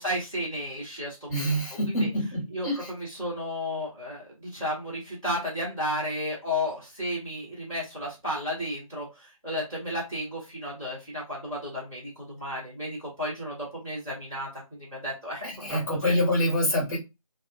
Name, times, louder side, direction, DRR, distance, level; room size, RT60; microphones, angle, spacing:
voice 1, 0.0-1.5 1.9-2.1 2.5-16.2, left 1 dB, 5° right, -12 dB, 0.5 m, -33 dB
voice 2, 1.3-2.9 15.4-17.0, equal, 30° left, -2 dB, 1.4 m, -26 dB
2.8 x 2.2 x 2.3 m, 0.24 s
figure-of-eight pair, 160°, 18 cm